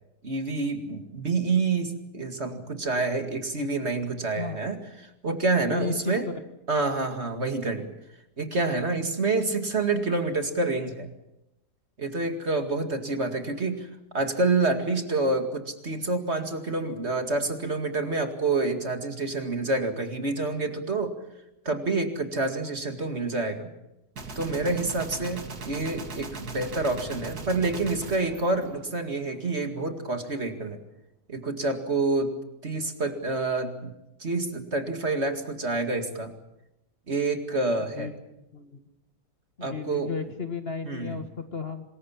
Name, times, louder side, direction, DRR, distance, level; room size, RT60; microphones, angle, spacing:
voice 1, 0.2-4.8 5.2-6.3 6.7-7.9 8.4-11.1 12.0-13.9 14.1-21.1 21.7-23.7 24.4-30.8 31.3-32.4 32.6-33.9 34.2-36.3 37.1-38.1 39.6-40.1 40.8-41.2, right 3 dB, 40° right, 6 dB, 2.4 m, -28 dB
voice 2, 5.7-6.4 37.8-38.1 38.5-38.8 39.6-41.8, left 5 dB, 35° left, 7 dB, 1.9 m, -34 dB
Gunshot gunfire, 24.2-29.4, right 3 dB, 65° right, 2.8 m, -39 dB
26.5 x 21.0 x 7.3 m, 0.90 s
omnidirectional pair, 1.7 m